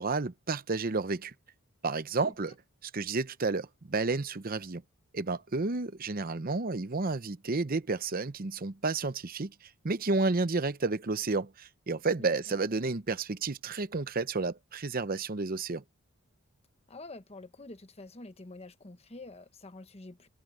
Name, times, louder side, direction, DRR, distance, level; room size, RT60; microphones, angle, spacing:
voice 1, 0.0-1.3 1.8-2.5 2.8-4.8 5.1-9.5 9.8-15.8, right 3 dB, 40° right, 0.8 m, -31 dB
voice 2, 12.2-12.6 16.9-20.3, left 2 dB, 30° left, 1.1 m, -47 dB
head